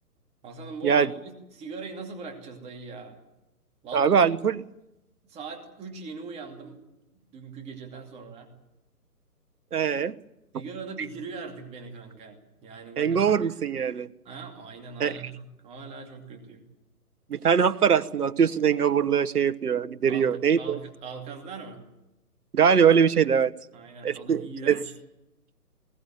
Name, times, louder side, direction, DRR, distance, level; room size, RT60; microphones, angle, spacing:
voice 1, 0.4-3.2 3.8-4.2 5.2-6.8 7.1-8.5 10.5-13.6 14.2-16.7 20.1-21.8 23.7-24.9, right 4 dB, 15° right, 3 dB, 2.6 m, -41 dB
voice 2, 3.9-4.7 9.7-10.1 13.0-14.1 15.0-15.1 17.3-20.8 22.5-23.5 24.0-24.8, right 7 dB, 75° right, 13 dB, 1.2 m, -22 dB
20.5 x 17.5 x 9.3 m, 0.93 s
hypercardioid pair, 150°, 46 cm